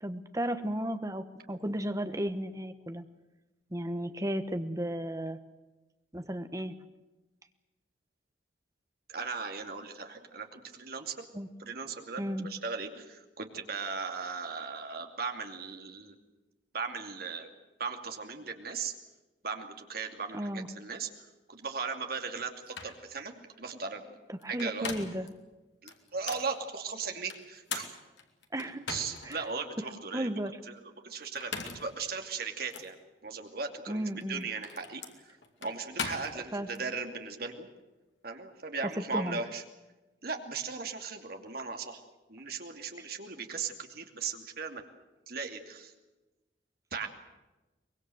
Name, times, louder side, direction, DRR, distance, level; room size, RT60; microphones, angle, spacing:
voice 1, 0.0-3.0 3.7-5.4 6.1-6.7 11.3-11.5 12.2-12.5 20.3-20.7 24.3-25.3 28.5-28.8 29.2-29.5 30.1-30.6 33.9-34.5 36.5-36.7 39.1-39.4 43.0-43.1, right 1 dB, 20° right, 9 dB, 1.2 m, -34 dB
voice 2, 9.1-11.1 11.6-16.1 16.7-17.5 17.8-18.9 19.4-21.1 21.5-24.2 24.5-24.9 25.8-27.9 28.9-30.3 30.7-30.8 31.0-33.0 33.2-35.0 35.6-37.7 38.2-39.6 40.2-42.0 42.3-44.8 45.3-45.9 46.9-47.1, right 5 dB, 55° right, 4 dB, 2.6 m, -37 dB
sound 1, 22.4-22.5 22.7-23.0 24.4-25.3 25.9-26.5 27.3-29.4 29.9-30.0 31.2-31.9 32.7-32.9 34.1-36.8, left 5 dB, 75° left, 2.7 m, -40 dB
23.5 x 21.5 x 7.9 m, 1.1 s
head